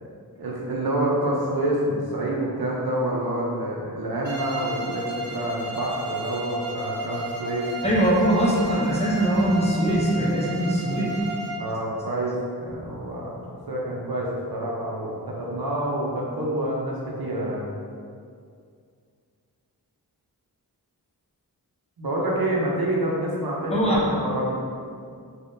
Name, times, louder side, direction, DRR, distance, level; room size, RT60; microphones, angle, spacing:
voice 1, 0.4-7.7 11.5-13.4 13.7-17.7 22.0-24.5, right 1 dB, 70° right, -3 dB, 0.7 m, -27 dB
Bowed string instrument, 4.2-11.7, right 1 dB, 30° right, 1.0 m, -33 dB
voice 2, 7.8-11.2 23.7-24.0, right 1 dB, 15° left, -6 dB, 0.6 m, -22 dB
3.4 x 2.3 x 2.6 m, 2.2 s
wide cardioid pair, 90°, 38 cm